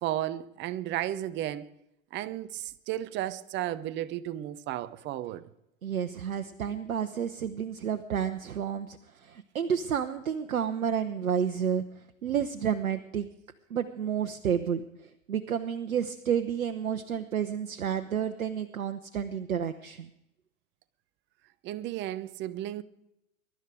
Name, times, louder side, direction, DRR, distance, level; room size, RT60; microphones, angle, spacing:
voice 1, 0.0-1.7 2.1-5.5 21.6-22.8, right 13 dB, 25° right, 0.8 m, -33 dB
voice 2, 5.8-9.0 9.2-11.8 12.2-13.3 13.7-14.8 15.3-20.1, right 8 dB, 70° right, 1.1 m, -30 dB
22.5 x 12.0 x 4.9 m
figure-of-eight pair, 100°, 42 cm